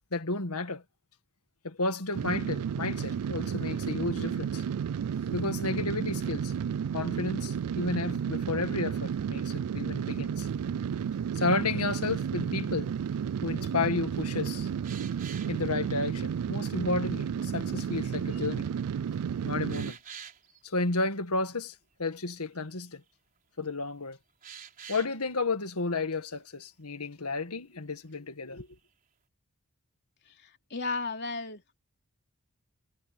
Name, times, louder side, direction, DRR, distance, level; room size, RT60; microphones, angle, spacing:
voice 1, 0.1-0.8 1.6-4.6 5.3-6.5 6.9-10.5 11.3-12.9 13.4-14.7 15.5-18.7 19.4-20.0 20.6-23.0 23.6-24.2 24.9-28.7, left 3 dB, 80° left, 1.9 m, -32 dB
sound 1, 2.1-19.9, right 7 dB, 85° right, 0.3 m, -32 dB
sound 2, 10.4-10.5 12.7-13.4 14.8-15.6 18.5-18.6 19.1-19.2 19.7-20.6 22.2-22.3 22.5-22.9 24.4-25.2 28.6-28.8, right 8 dB, 40° right, 4.3 m, -47 dB
voice 2, 30.7-31.8, left 3 dB, 50° left, 3.4 m, -33 dB
head